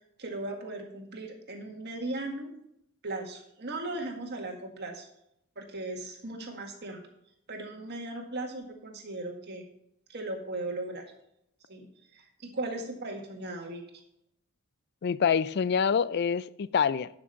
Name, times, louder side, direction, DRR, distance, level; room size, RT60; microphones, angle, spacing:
voice 1, 0.2-2.5 3.0-5.1 5.6-7.0 7.5-9.7 10.1-11.1 11.7-11.9 12.1-13.8, right 2 dB, 50° right, 3 dB, 1.8 m, -37 dB
voice 2, 15.0-17.1, left 7 dB, 50° left, 18 dB, 0.3 m, -26 dB
11.0 x 6.1 x 5.7 m, 0.77 s
head